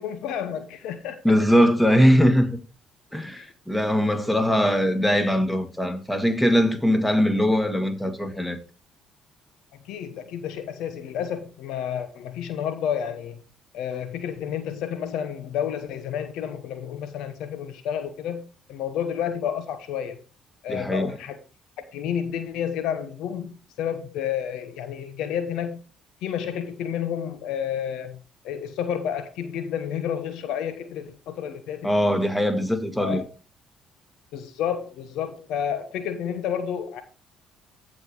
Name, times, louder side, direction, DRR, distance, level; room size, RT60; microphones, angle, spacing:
voice 1, 0.0-1.2 3.4-3.5 9.8-13.4 13.7-18.4 18.7-20.2 20.6-21.4 21.9-25.8 26.2-28.2 28.4-31.9 33.0-33.3 34.3-37.0, left 8 dB, 65° left, 1.0 m, -30 dB
voice 2, 1.2-2.6 3.1-8.6 20.7-21.1 31.8-33.2, equal, 10° left, 2.1 m, -21 dB
15.0 x 5.3 x 3.1 m
hypercardioid pair, 50°, 0 cm